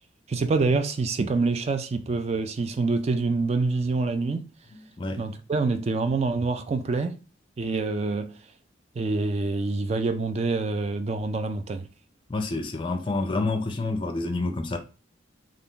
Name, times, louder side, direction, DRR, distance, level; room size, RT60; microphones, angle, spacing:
voice 1, 0.3-4.5 5.2-7.2 7.6-8.3 9.0-11.9, right 3 dB, 35° right, 0.3 m, -26 dB
voice 2, 5.0-5.4 12.3-14.8, left 2 dB, 25° left, 0.4 m, -28 dB
2.5 x 2.4 x 3.6 m
head